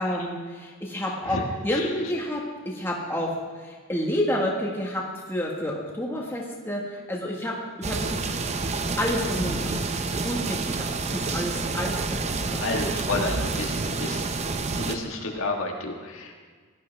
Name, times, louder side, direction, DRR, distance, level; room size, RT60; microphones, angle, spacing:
voice 1, 0.0-5.0 5.3-8.3 9.0-9.9 10.2-12.9, left 1 dB, 10° left, -2 dB, 1.7 m, -29 dB
sound 1, 7.8-15.0, right 3 dB, 30° right, 0.6 m, -28 dB
voice 2, 12.6-14.3 14.7-16.3, left 2 dB, 75° left, 1 dB, 1.6 m, -30 dB
17.0 x 11.5 x 3.5 m, 1.5 s
head